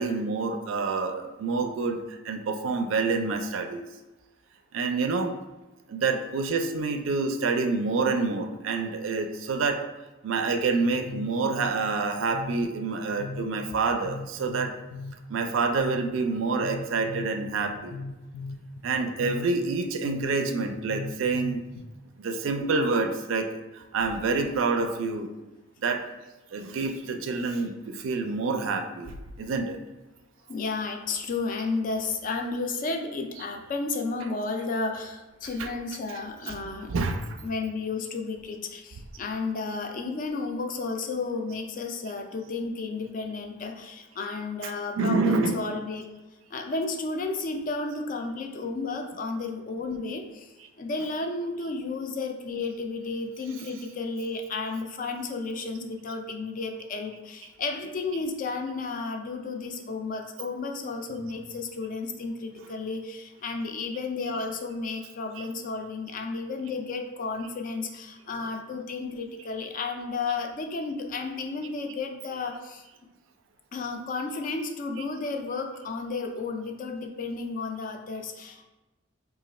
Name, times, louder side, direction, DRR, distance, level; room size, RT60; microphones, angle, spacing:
voice 1, 0.0-3.8 4.7-5.3 5.9-9.8 10.2-14.7 15.3-18.0 18.8-21.6 22.2-25.3 25.8-26.0 26.5-29.8 33.4-33.5 34.2-34.3 35.5-35.7 36.5-36.6 36.9-37.3 44.6-45.6 51.0-51.1 53.6-53.7 64.2-64.4 65.4-65.5 68.4-68.5 70.3-70.4, right 4 dB, 80° right, 6 dB, 0.4 m, -27 dB
voice 2, 11.1-11.7 12.3-12.7 13.2-13.5 14.0-15.2 15.8-16.1 16.6-17.3 17.9-18.6 19.2-19.5 20.0-20.3 20.9-21.6 30.5-36.9 37.4-46.1 46.5-72.8 73.7-78.6, left 3 dB, 40° left, 5 dB, 0.3 m, -33 dB
3.0 x 2.4 x 4.0 m, 1.1 s
head